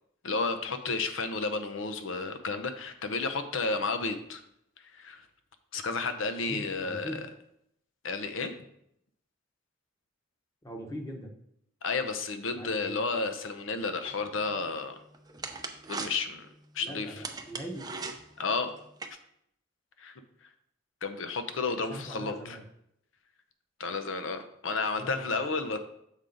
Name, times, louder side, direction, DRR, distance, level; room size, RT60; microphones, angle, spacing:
voice 1, 0.2-4.4 4.9-5.3 5.7-7.2 8.0-8.5 11.8-15.0 15.9-16.5 16.7-17.2 18.4-18.7 20.0-20.1 21.0-22.6 23.8-25.8, left 4 dB, 75° left, 7 dB, 0.7 m, -32 dB
voice 2, 6.4-7.2 10.6-11.3 12.5-13.0 16.8-17.8 21.9-22.6 24.9-25.3, equal, 20° left, 2 dB, 1.0 m, -41 dB
sound 1, 14.0-19.1, right 4 dB, 20° right, 0.6 m, -41 dB
7.3 x 4.9 x 3.9 m, 0.75 s
head